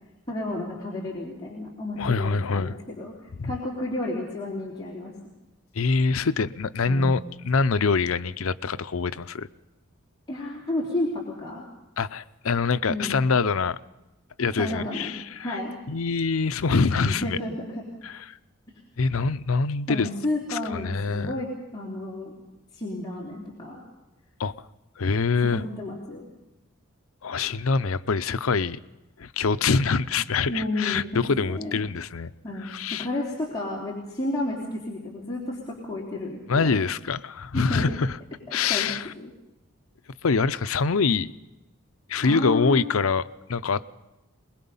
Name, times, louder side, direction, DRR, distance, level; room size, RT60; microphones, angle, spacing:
voice 1, 0.3-3.1 3.4-5.1 6.9-7.2 10.3-11.6 12.9-13.2 14.6-15.1 15.4-15.8 17.1-17.8 19.9-22.3 22.7-23.8 25.5-26.3 30.5-31.8 32.4-36.9 37.5-37.9 38.7-38.9 39.2-39.3 42.2-42.9, left 1 dB, 20° left, 3.3 m, -31 dB
voice 2, 2.0-2.8 3.4-3.5 5.7-9.5 12.0-13.8 14.4-15.6 15.9-17.4 18.0-18.4 19.0-20.1 20.5-21.3 24.4-24.5 25.0-25.6 27.2-28.8 29.2-32.3 32.6-33.1 36.5-38.2 38.5-39.1 40.2-41.3 42.1-43.9, left 4 dB, 85° left, 0.6 m, -25 dB
23.0 x 21.0 x 5.5 m
head